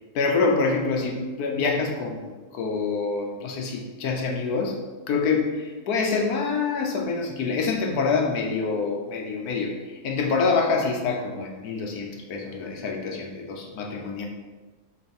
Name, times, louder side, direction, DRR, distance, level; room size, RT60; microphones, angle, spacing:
voice 1, 0.1-4.8 5.1-14.3, left 4 dB, 75° left, 2 dB, 1.2 m, -26 dB
7.0 x 3.2 x 4.3 m, 1.3 s
omnidirectional pair, 1.7 m